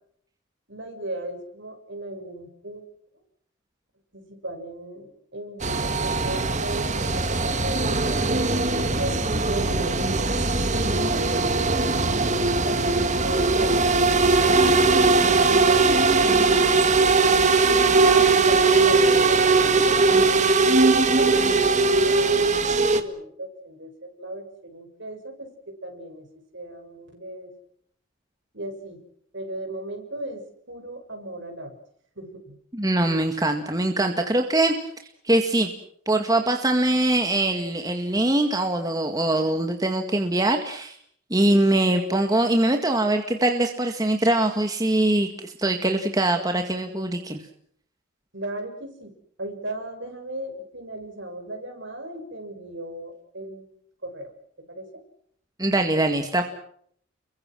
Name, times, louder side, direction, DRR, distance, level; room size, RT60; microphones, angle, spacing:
voice 1, 0.7-2.8 4.1-10.5 10.9-14.6 15.2-17.0 17.7-26.3 26.5-27.5 28.5-29.0 29.3-30.4 30.7-31.8 32.1-32.6 48.3-49.1 49.4-53.7 54.0-54.3 54.7-55.0, right 1 dB, 60° right, 5 dB, 6.6 m, -37 dB
sound 1, 5.6-23.0, right 3 dB, 35° right, 1.9 m, -20 dB
voice 2, 32.7-34.7 35.2-35.7 36.1-41.0 41.3-47.4 55.6-56.4, right 1 dB, 20° right, 4 dB, 2.0 m, -22 dB
29.5 x 23.0 x 6.3 m, 0.65 s
head